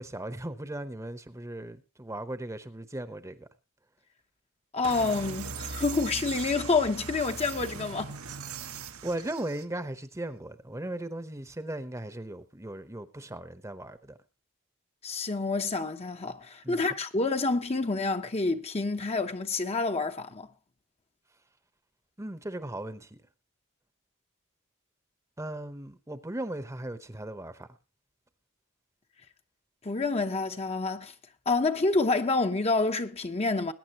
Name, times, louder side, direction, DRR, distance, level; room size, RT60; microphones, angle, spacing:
voice 1, 0.0-3.5 9.0-14.2 16.6-16.8 22.2-23.2 25.4-27.7, right 1 dB, 15° right, 0.9 m, -37 dB
voice 2, 4.7-8.2 15.0-20.5 29.8-31.1 31.5-33.7, left 3 dB, 30° left, 0.8 m, -28 dB
sound 1, 4.8-9.6, right 5 dB, 85° right, 1.3 m, -39 dB
21.5 x 9.7 x 2.9 m
head